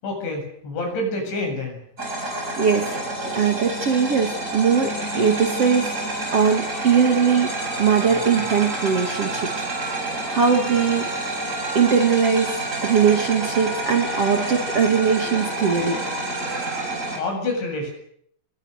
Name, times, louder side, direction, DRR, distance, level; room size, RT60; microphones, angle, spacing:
voice 1, 0.0-1.8 17.2-17.9, left 2 dB, 80° left, 3 dB, 9.8 m, -27 dB
sound 1, 2.0-17.2, right 2 dB, 15° right, 7.8 m, -29 dB
voice 2, 2.6-2.9 3.3-5.9 6.3-7.5 7.8-11.3 11.7-16.0, right 6 dB, 40° right, 4 dB, 2.6 m, -20 dB
sound 2, 5.3-16.9, right 3 dB, 90° right, 7.3 m, -38 dB
27.5 x 23.5 x 6.6 m, 0.69 s
omnidirectional pair, 5.1 m